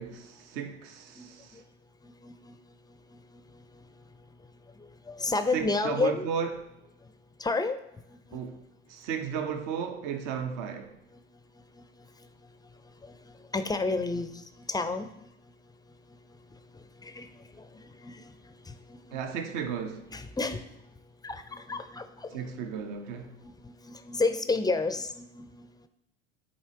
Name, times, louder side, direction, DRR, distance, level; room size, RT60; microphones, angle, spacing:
voice 1, 0.0-1.6 5.5-6.6 8.3-8.6 8.9-11.0 19.1-20.1 22.3-23.4, right 7 dB, 60° right, 1.0 m, -34 dB
voice 2, 1.2-1.6 2.0-2.5 3.1-3.6 5.1-6.3 7.4-7.8 8.3-8.4 11.8-11.9 13.0-13.2 13.5-15.1 16.7-19.2 20.1-20.7 21.2-22.4 23.4-25.7, left 3 dB, 10° left, 0.5 m, -32 dB
10.5 x 4.2 x 2.8 m
hypercardioid pair, 65°, 35 cm